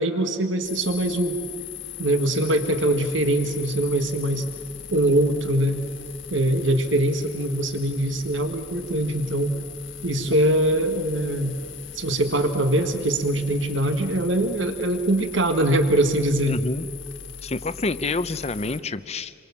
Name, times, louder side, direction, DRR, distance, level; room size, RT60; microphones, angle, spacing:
voice 1, 0.0-1.4 2.0-4.5 4.9-5.8 6.3-9.6 10.0-11.6 11.9-16.6, right 1 dB, 75° right, 7 dB, 1.8 m, -22 dB
sound 1, 0.6-18.8, left 9 dB, 75° left, 1.7 m, -40 dB
voice 2, 16.5-16.9 17.4-19.3, left 3 dB, 35° left, 14 dB, 0.7 m, -28 dB
29.0 x 23.5 x 7.2 m, 2.2 s
head